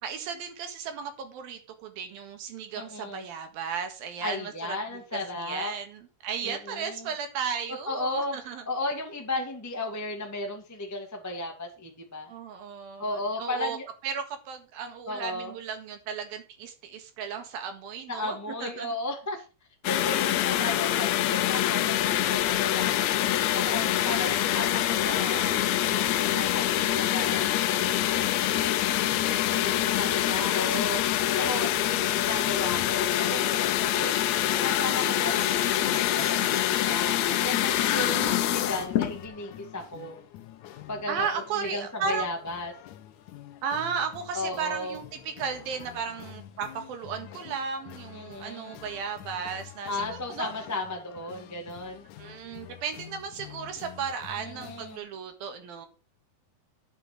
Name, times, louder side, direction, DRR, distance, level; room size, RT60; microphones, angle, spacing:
voice 1, 0.0-4.8 5.1-8.6 12.3-13.8 14.0-19.0 22.7-23.0 25.1-25.4 27.4-27.7 29.5-30.6 31.2-32.0 35.1-35.3 38.0-38.7 41.1-42.3 43.6-50.5 52.2-55.9, right 6 dB, 85° right, 7 dB, 3.5 m, -35 dB
voice 2, 2.7-3.2 4.2-5.7 6.4-7.1 7.7-8.4 8.7-12.3 13.0-13.8 15.1-15.5 18.1-19.4 19.8-28.9 29.5-31.0 31.3-34.1 34.5-40.2 40.9-41.3 41.5-42.7 44.3-45.0 48.1-48.7 49.9-52.0 54.4-55.0, left 2 dB, 10° left, 1 dB, 1.1 m, -35 dB
sound 1, 19.8-39.2, left 12 dB, 85° left, 1.5 m, -25 dB
Bell, 34.9-39.7, right 8 dB, 65° right, 3.0 m, -49 dB
sound 2, 38.5-55.0, left 12 dB, 70° left, 2.1 m, -47 dB
10.0 x 5.7 x 7.4 m, 0.33 s
omnidirectional pair, 4.2 m